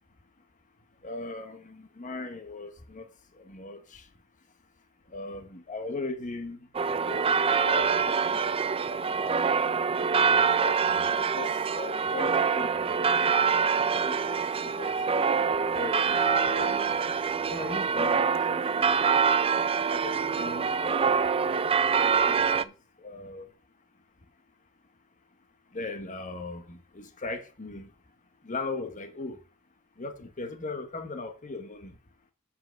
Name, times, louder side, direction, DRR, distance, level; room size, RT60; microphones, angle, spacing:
voice 1, 1.0-3.1 3.4-4.0 5.1-6.6 7.0-8.5 8.9-9.4 10.3-13.0 14.0-14.9 15.7-16.9 17.5-19.0 19.9-21.2 22.0-22.7 23.0-23.5 25.7-27.9 28.4-29.4 30.0-31.9, left 3 dB, 35° left, 1.2 m, -39 dB
sound 1, 6.7-22.6, right 6 dB, 25° right, 0.4 m, -25 dB
7.7 x 5.7 x 6.5 m
head